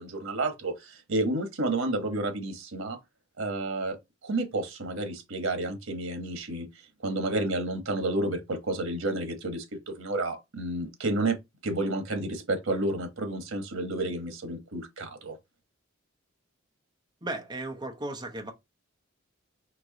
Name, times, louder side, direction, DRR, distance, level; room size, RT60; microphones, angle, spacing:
voice 1, 0.0-3.0 3.4-4.0 4.2-6.7 7.0-11.4 11.6-15.4, right 2 dB, 90° right, 1.2 m, -30 dB
voice 2, 17.2-18.5, right 2 dB, 20° right, 0.9 m, -35 dB
4.6 x 2.9 x 3.9 m
head